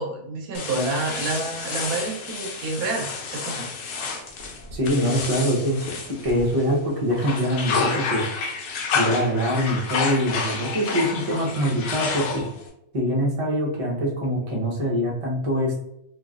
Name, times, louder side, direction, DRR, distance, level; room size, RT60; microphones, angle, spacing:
voice 1, 0.0-3.7, right 3 dB, 80° right, 1 dB, 1.2 m, -29 dB
sound 1, 0.5-6.7 7.1-12.7, left 4 dB, 90° left, 1.1 m, -29 dB
voice 2, 4.7-8.3 8.9-12.4 12.9-15.8, equal, 40° right, -3 dB, 0.5 m, -24 dB
3.0 x 2.3 x 2.4 m, 0.80 s
omnidirectional pair, 1.6 m